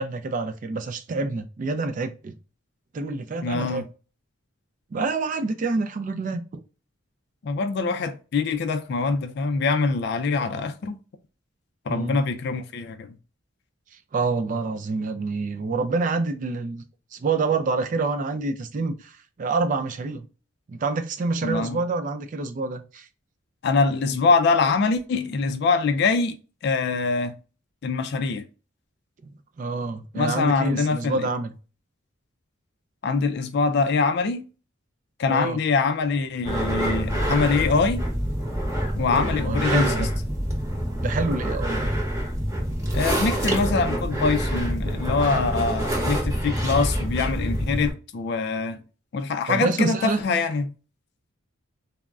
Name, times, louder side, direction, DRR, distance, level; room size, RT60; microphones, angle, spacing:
voice 1, 0.0-2.3 2.9-3.8 4.9-6.6 11.9-12.2 14.1-16.8 17.1-20.3 20.7-23.1 29.6-31.5 35.3-35.6 39.2-40.1 41.0-42.0 45.2-45.3 49.5-50.2, right 3 dB, 40° right, 0.3 m, -27 dB
voice 2, 3.4-3.8 7.4-11.0 11.9-13.2 21.4-21.8 23.6-26.4 26.6-27.4 27.8-28.4 30.1-31.3 33.0-34.5 35.2-38.1 39.0-40.1 42.9-48.8 49.1-50.7, left 4 dB, 55° left, 0.3 m, -24 dB
sound 1, 36.4-47.9, equal, 15° right, 0.8 m, -26 dB
3.4 x 2.0 x 2.3 m
head